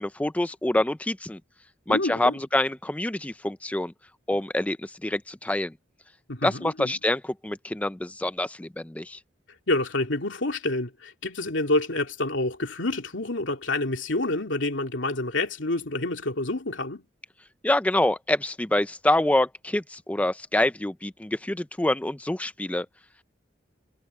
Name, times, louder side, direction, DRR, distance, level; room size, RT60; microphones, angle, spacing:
voice 1, 0.0-1.4 1.9-3.9 4.3-5.7 6.4-9.2 17.6-22.9, left 1 dB, 5° left, 0.4 m, -26 dB
voice 2, 1.9-2.3 6.3-7.0 9.7-17.0, left 2 dB, 85° left, 2.6 m, -28 dB
head